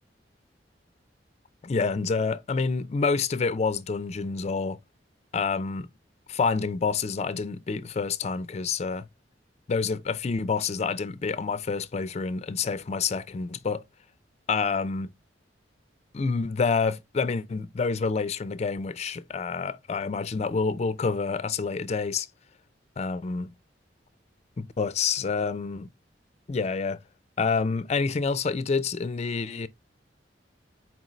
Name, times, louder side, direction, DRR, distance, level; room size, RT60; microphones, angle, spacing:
voice 1, 1.6-4.8 5.3-5.9 6.3-9.0 9.7-13.8 14.5-15.1 16.1-22.3 23.0-23.5 24.6-25.9 26.5-27.0 27.4-29.7, left 4 dB, 35° left, 0.4 m, -28 dB
4.6 x 3.8 x 3.0 m
head